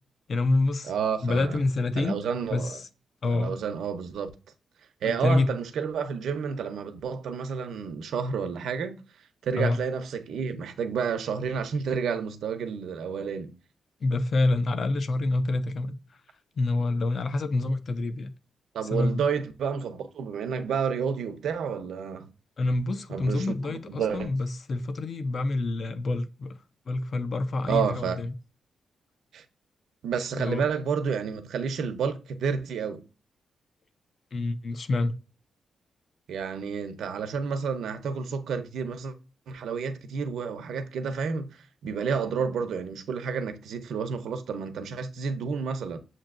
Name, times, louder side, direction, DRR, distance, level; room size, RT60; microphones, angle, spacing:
voice 1, 0.3-0.9 1.2-2.2 2.5-2.9 3.2-3.5 5.2-5.5 9.6-9.8 14.0-15.9 16.6-18.3 18.9-19.2 22.6-26.5 26.9-28.3 30.3-30.6 34.3-35.2, left 2 dB, 40° left, 0.5 m, -27 dB
voice 2, 0.9-1.6 2.0-2.8 3.2-4.3 5.0-9.0 9.4-13.5 18.7-22.3 23.1-24.3 27.7-28.2 29.3-29.4 30.0-33.0 36.3-39.2 39.5-46.0, right 6 dB, 80° right, 0.6 m, -30 dB
7.3 x 2.7 x 2.5 m
wide cardioid pair, 160°, 0 cm